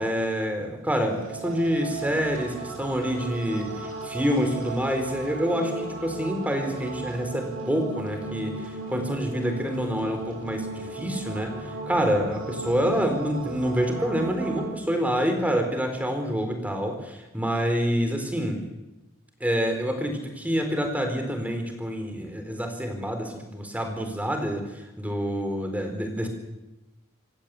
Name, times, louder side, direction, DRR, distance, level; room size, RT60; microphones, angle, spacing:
voice 1, 0.0-18.6 19.4-24.6 25.0-26.3, equal, 5° right, 5 dB, 4.2 m, -27 dB
sound 1, 1.1-14.7, right 2 dB, 75° right, 6.8 m, -36 dB
27.5 x 16.0 x 8.4 m, 1.0 s
head